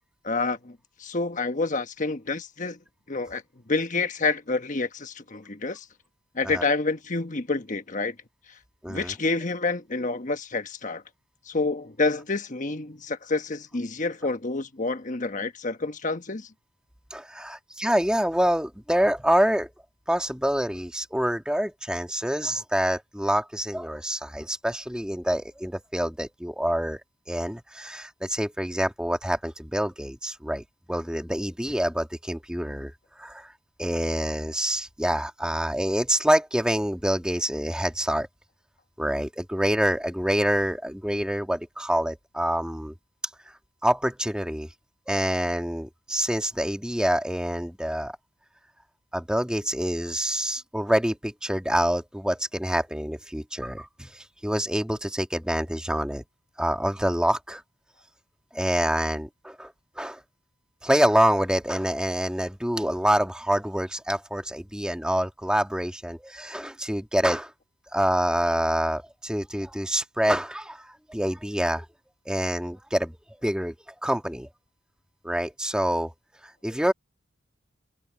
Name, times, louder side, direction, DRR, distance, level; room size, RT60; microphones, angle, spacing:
voice 1, 0.2-2.8 3.1-5.9 6.3-8.2 8.9-11.0 11.5-16.5, left 3 dB, 40° left, 1.3 m, -28 dB
voice 2, 8.8-9.1 17.1-19.7 20.1-27.0 27.3-32.9 33.2-33.5 33.8-38.3 39.0-42.9 43.8-44.7 45.1-48.2 49.1-56.2 56.6-57.6 58.5-59.7 60.0-60.2 60.8-67.5 67.9-71.8 72.3-73.2 73.4-73.7 74.0-74.5 75.2-76.1 76.6-76.9, equal, 5° right, 2.1 m, -26 dB
head